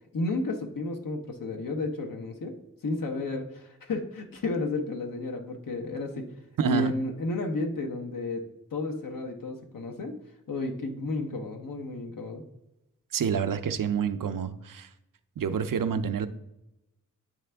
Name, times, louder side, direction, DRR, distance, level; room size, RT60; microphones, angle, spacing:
voice 1, 0.1-2.5 2.8-6.3 6.6-8.4 8.7-10.2 10.5-12.4, left 2 dB, 75° left, 3 dB, 0.8 m, -32 dB
voice 2, 6.6-6.9 13.1-14.9 15.4-16.3, right 7 dB, 75° right, 11 dB, 0.5 m, -28 dB
8.7 x 3.3 x 3.3 m, 0.92 s
cardioid pair, 45°, 33 cm